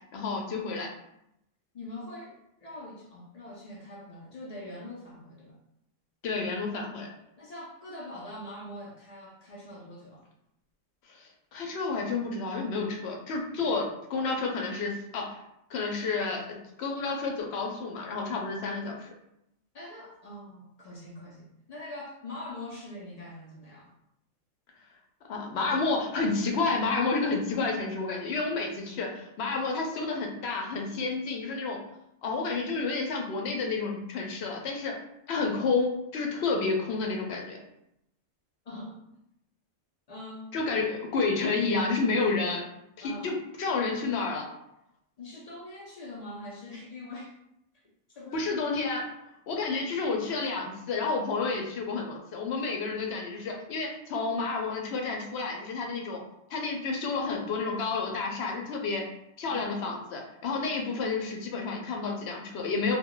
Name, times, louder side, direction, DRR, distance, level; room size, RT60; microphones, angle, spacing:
voice 1, 0.1-0.9 6.2-7.1 11.1-15.4 15.7-16.5 16.8-19.1 25.3-31.8 32.2-35.0 35.3-37.6 40.5-42.6 43.0-44.5 48.3-49.1 49.5-56.2 56.5-59.0 59.4-63.0, left 4 dB, 65° left, 1 dB, 0.7 m, -30 dB
voice 2, 1.7-2.3 2.6-5.6 7.4-10.3 19.7-23.9 38.7-39.0 40.1-40.5 43.0-43.3 45.2-47.4 47.7-47.8 48.1-48.6 59.4-59.7, left 1 dB, 90° left, -4 dB, 0.3 m, -43 dB
2.2 x 2.1 x 3.7 m, 0.81 s
omnidirectional pair, 1.4 m